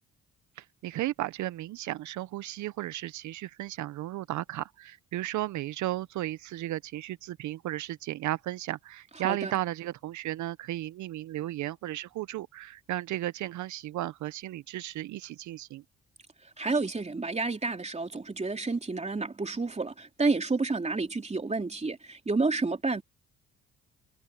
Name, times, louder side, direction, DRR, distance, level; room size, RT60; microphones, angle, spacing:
voice 1, 0.6-15.8, right 15 dB, 75° right, 0.6 m, -34 dB
voice 2, 16.6-23.0, right 3 dB, 20° right, 3.2 m, -30 dB
cardioid pair, 90°, 30 cm